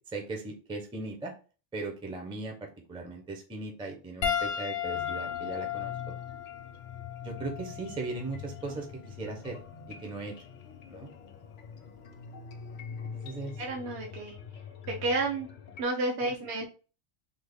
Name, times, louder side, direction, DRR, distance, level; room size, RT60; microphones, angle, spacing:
voice 1, 0.1-1.3 1.7-5.9 7.2-9.6 9.9-10.3 10.9-11.1 13.0-13.6, right 3 dB, 10° right, 1 dB, 0.3 m, -38 dB
Piano, 4.2-8.9 9.8-10.0 11.9-12.0, left 9 dB, 75° left, 0.9 m, -35 dB
sound 1, 4.9-15.8, left 6 dB, 60° left, 0.6 m, -45 dB
voice 2, 13.6-14.3 14.9-15.5 15.8-16.7, right 2 dB, 75° right, 1 dB, 0.9 m, -31 dB
3.5 x 2.0 x 3.4 m, 0.36 s
omnidirectional pair, 1.2 m